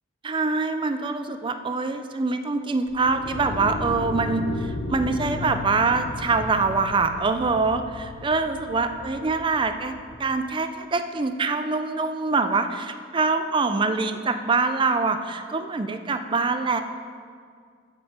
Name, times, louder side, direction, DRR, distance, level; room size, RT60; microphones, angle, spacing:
voice 1, 0.2-9.9 10.2-16.8, right 4 dB, 25° right, 8 dB, 0.4 m, -24 dB
sound 1, 2.9-10.2, left 2 dB, 55° left, 0.6 m, -35 dB
12.0 x 5.4 x 4.3 m, 2.1 s
head